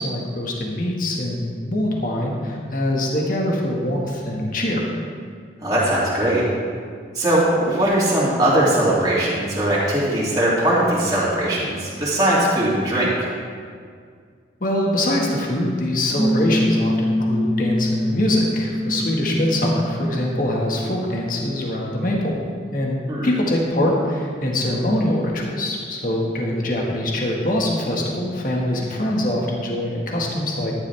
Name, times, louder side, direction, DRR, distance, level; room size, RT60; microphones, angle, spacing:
voice 1, 0.0-4.9 14.6-22.4 22.7-30.7, left 1 dB, 45° left, -1 dB, 1.8 m, -23 dB
voice 2, 5.6-6.4 7.1-13.1 23.1-23.3, right 1 dB, 20° right, -9 dB, 2.7 m, -20 dB
Piano, 16.2-21.3, left 1 dB, ahead, 0.8 m, -25 dB
14.0 x 11.0 x 3.5 m, 2.1 s
head